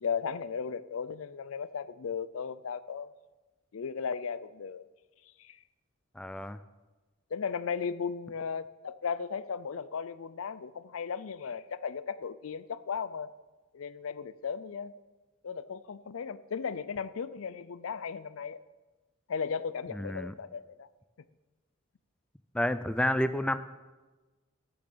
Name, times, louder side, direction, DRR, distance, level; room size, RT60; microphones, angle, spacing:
voice 1, 0.0-3.1 3.7-4.9 5.4-5.6 7.3-13.3 13.7-14.9 15.4-18.6 19.3-20.9, left 6 dB, 85° left, 16 dB, 0.5 m, -36 dB
voice 2, 6.2-6.6 19.9-20.3 22.5-23.6, left 1 dB, 5° left, 12 dB, 0.4 m, -30 dB
11.5 x 7.0 x 6.8 m, 1.2 s
head